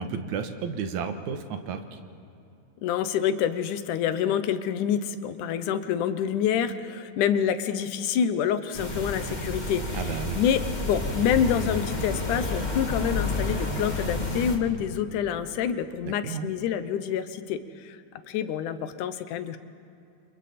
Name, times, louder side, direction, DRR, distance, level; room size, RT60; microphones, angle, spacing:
voice 1, 0.0-2.0 9.9-10.4 16.0-16.5, right 6 dB, 75° right, 7 dB, 2.6 m, -32 dB
voice 2, 2.8-10.0 10.3-18.0 18.3-19.6, left 8 dB, 90° left, 11 dB, 2.4 m, -27 dB
sound 1, 8.7-14.6, left 2 dB, 20° left, 1.5 m, -30 dB
30.0 x 26.5 x 4.3 m, 2.7 s
omnidirectional pair, 3.5 m